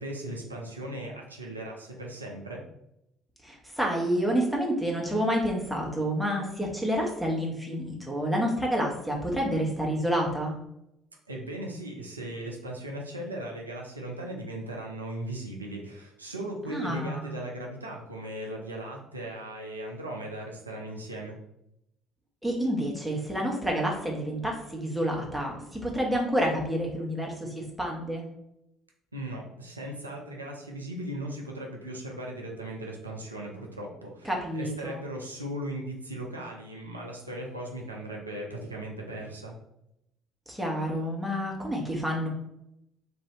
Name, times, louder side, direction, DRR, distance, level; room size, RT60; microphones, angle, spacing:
voice 1, 0.0-2.6 11.3-21.4 29.1-39.6, right 1 dB, 85° right, -1 dB, 0.4 m, -38 dB
voice 2, 3.4-10.5 16.7-17.3 22.4-28.2 34.2-35.0 40.5-42.3, equal, ahead, -2 dB, 1.1 m, -29 dB
3.3 x 2.6 x 3.0 m, 0.82 s
figure-of-eight pair, 50°, 0 cm